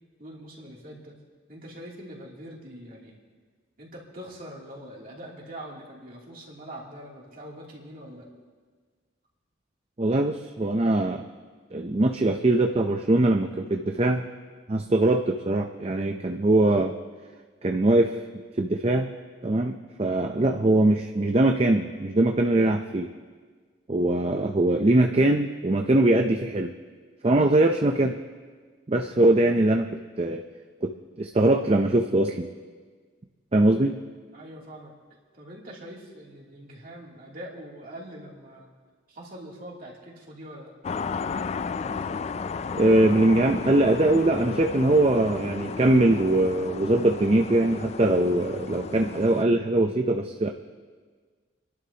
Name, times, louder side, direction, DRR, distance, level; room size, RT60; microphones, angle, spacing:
voice 1, 0.2-1.2 1.5-3.2 3.8-8.3 34.3-34.9 35.3-38.7 39.1-40.7, right 1 dB, 50° right, -3 dB, 2.8 m, -43 dB
voice 2, 10.0-11.2 11.7-14.3 14.7-16.9 17.6-18.2 18.6-19.1 19.4-23.1 23.9-26.7 27.2-28.2 28.9-30.4 30.8-32.5 33.5-34.0 42.7-50.5, right 1 dB, 30° right, 4 dB, 0.5 m, -22 dB
sound 1, 40.8-49.4, left 5 dB, 35° left, 0.3 m, -34 dB
29.0 x 11.5 x 2.9 m, 1.5 s
head